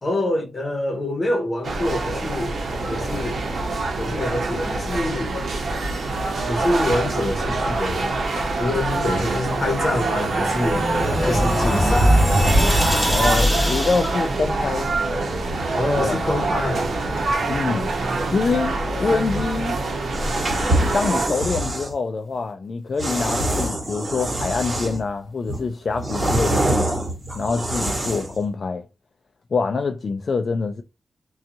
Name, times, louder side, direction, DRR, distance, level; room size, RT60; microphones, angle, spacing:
voice 1, 0.0-2.6 2.9-3.4 4.0-5.4 6.5-8.1 8.6-10.9 11.2-12.2 15.7-16.9, left 1 dB, 35° left, 1.0 m, -25 dB
sound 1, 1.6-21.3, right 2 dB, 75° right, 0.8 m, -25 dB
sound 2, 9.7-14.2, equal, 10° left, 1.1 m, -20 dB
voice 2, 13.1-14.9 16.0-16.2 17.5-17.9 18.3-19.8 20.9-28.9 29.5-30.8, left 4 dB, 55° left, 0.3 m, -25 dB
sound 3, 20.1-21.9 23.0-25.1 25.5-28.4, right 1 dB, 30° right, 1.3 m, -25 dB
2.6 x 2.3 x 2.7 m
wide cardioid pair, 125°, 0 cm